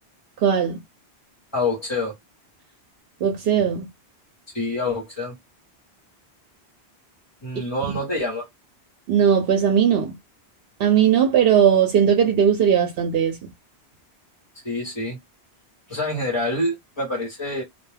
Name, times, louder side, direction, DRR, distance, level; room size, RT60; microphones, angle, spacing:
voice 1, 0.4-0.8 3.2-3.9 7.6-7.7 9.1-10.1 10.8-13.4, right 8 dB, 70° right, 0.8 m, -18 dB
voice 2, 1.5-2.1 4.5-5.4 7.4-8.5 14.6-15.2 15.9-17.6, left 2 dB, 25° left, 0.9 m, -26 dB
2.2 x 2.2 x 3.2 m
omnidirectional pair, 1.1 m